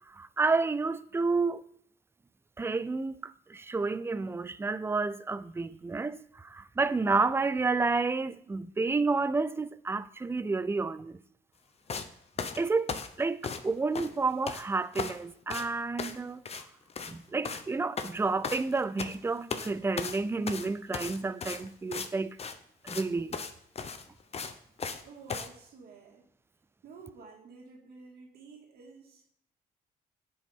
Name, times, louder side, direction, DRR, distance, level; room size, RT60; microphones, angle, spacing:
voice 1, 0.1-1.6 2.6-11.2 12.6-12.9 13.2-16.4 17.1-22.4 22.8-23.4, right 3 dB, 15° right, 0.4 m, -30 dB
sound 1, 11.9-12.1 12.4-13.7 13.9-14.6 14.9-15.2 15.5-15.7 16.0-16.2 16.5-16.6 16.9-17.2 17.4-17.7 18.0-19.2 19.5-19.7 20.0-22.1 22.4-22.6 22.9-23.0 23.3-23.5 23.8-25.0 25.3-25.5, left 5 dB, 40° left, 0.8 m, -36 dB
voice 2, 25.0-26.3 26.8-29.2, right 4 dB, 70° right, 2.2 m, -51 dB
9.8 x 5.4 x 3.7 m
cardioid pair, 80°, 17 cm